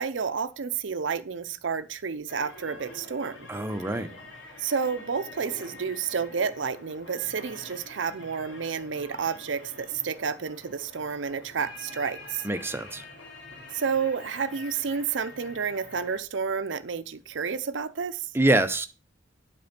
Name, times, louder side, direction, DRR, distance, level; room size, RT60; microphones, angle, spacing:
voice 1, 0.0-3.5 4.6-12.4 13.7-18.3, right 6 dB, 75° right, 0.6 m, -30 dB
sound 1, 2.3-16.2, left 2 dB, 85° left, 2.7 m, -46 dB
voice 2, 3.5-4.1 12.4-13.0 18.3-18.9, right 1 dB, 10° right, 0.7 m, -25 dB
8.6 x 5.2 x 5.9 m
head